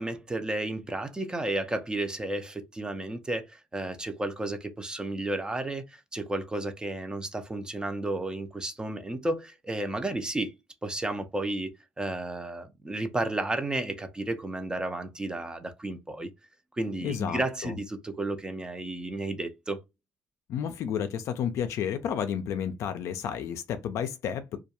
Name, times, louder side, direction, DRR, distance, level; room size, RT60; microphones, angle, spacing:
voice 1, 0.0-16.3 16.7-19.8, right 2 dB, 15° right, 0.4 m, -32 dB
voice 2, 17.0-17.8 20.5-24.6, left 8 dB, 65° left, 0.4 m, -31 dB
2.3 x 2.2 x 2.8 m
supercardioid pair, 85°, 5 cm